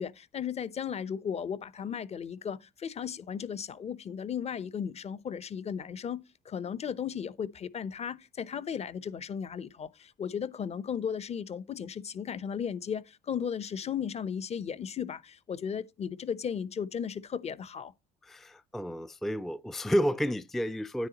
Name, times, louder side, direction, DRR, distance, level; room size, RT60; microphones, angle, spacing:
voice 1, 0.0-17.9, left 7 dB, 40° left, 0.8 m, -35 dB
voice 2, 18.2-21.1, equal, ahead, 0.4 m, -31 dB
9.8 x 8.3 x 2.9 m
cardioid pair, 110°, 17 cm